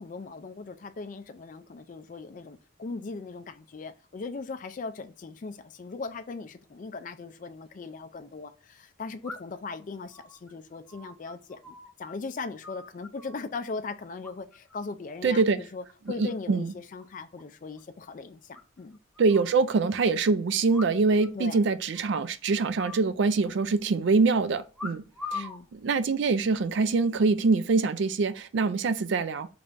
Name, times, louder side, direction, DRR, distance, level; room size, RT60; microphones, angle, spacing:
voice 1, 0.0-19.0 21.3-21.6 25.3-25.7, left 4 dB, 40° left, 0.3 m, -39 dB
sound 1, 7.4-7.5 9.2-9.7 10.1-12.1 12.4-13.4 14.2-14.7 15.0-15.4 15.8-16.4 16.7-16.8 17.0-17.1 17.4-17.5 17.8-17.9 18.5-19.6 20.7-21.3 21.5-21.6 21.9-22.3 22.8-23.7 24.7-25.6 26.4-26.7, left 4 dB, ahead, 0.6 m, -42 dB
voice 2, 15.2-15.6 16.2-16.7 19.2-25.0 25.3-25.5 25.7-29.5, right 4 dB, 60° right, 0.3 m, -24 dB
3.7 x 3.3 x 2.5 m
head